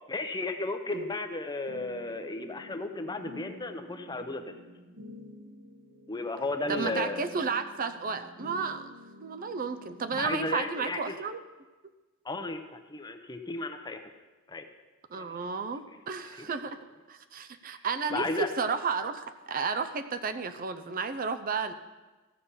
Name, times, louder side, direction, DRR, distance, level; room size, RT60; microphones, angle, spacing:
voice 1, 0.1-4.5 6.1-7.3 10.2-11.2 12.2-14.0 14.5-14.7 15.2-15.4 16.4-16.5 18.1-18.5, left 2 dB, 20° left, 7 dB, 0.7 m, -34 dB
sound 1, 1.7-10.6, equal, 80° right, 2.3 m, -49 dB
voice 2, 6.7-8.9 9.2-11.4 15.1-16.8 17.1-21.7, right 5 dB, 40° right, 9 dB, 0.6 m, -32 dB
14.5 x 6.9 x 5.6 m, 1.2 s
head